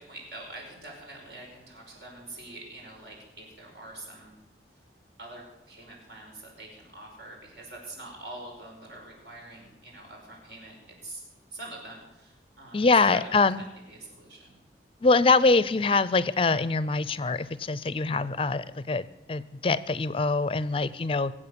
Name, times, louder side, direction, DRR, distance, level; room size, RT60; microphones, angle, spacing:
voice 1, 0.0-4.3 5.2-11.2 11.5-13.5 13.9-14.6, right 2 dB, 75° right, 0 dB, 5.4 m, -45 dB
voice 2, 12.7-13.6 15.0-21.3, left 3 dB, 30° left, 17 dB, 0.5 m, -24 dB
22.5 x 8.6 x 6.9 m, 0.95 s
head